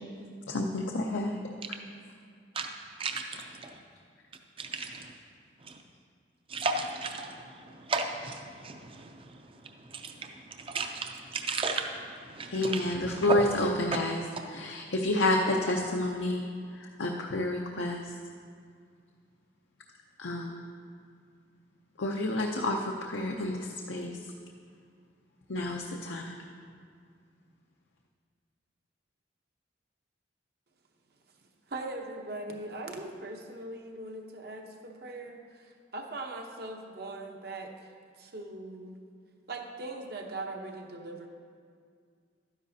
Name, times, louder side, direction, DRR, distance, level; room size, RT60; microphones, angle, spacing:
voice 1, 0.5-1.3 12.5-16.4 16.8-18.1 20.2-20.6 22.0-24.1 25.5-26.4, left 1 dB, 90° left, 1 dB, 0.6 m, -29 dB
voice 2, 3.0-3.8 4.6-5.1 5.7-5.8 6.5-9.1 9.9-10.3 10.6-11.9 12.2-13.4, right 3 dB, 30° right, 4 dB, 0.5 m, -34 dB
voice 3, 31.7-37.7 38.2-39.0 39.5-41.3, right 2 dB, 60° right, 3 dB, 0.9 m, -40 dB
12.5 x 10.0 x 2.7 m, 2.2 s
head